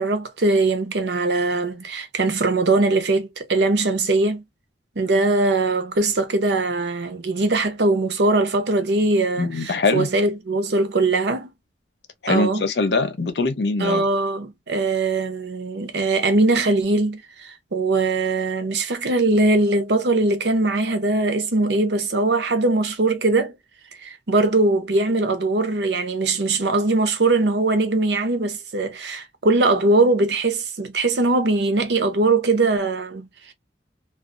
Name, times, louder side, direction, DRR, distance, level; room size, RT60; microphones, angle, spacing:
voice 1, 0.0-4.4 5.0-11.5 12.3-12.6 13.8-23.5 24.0-33.5, right 2 dB, 75° right, 0.7 m, -21 dB
voice 2, 9.4-10.1 12.2-14.1, left 3 dB, 75° left, 0.7 m, -22 dB
2.4 x 2.4 x 2.5 m
head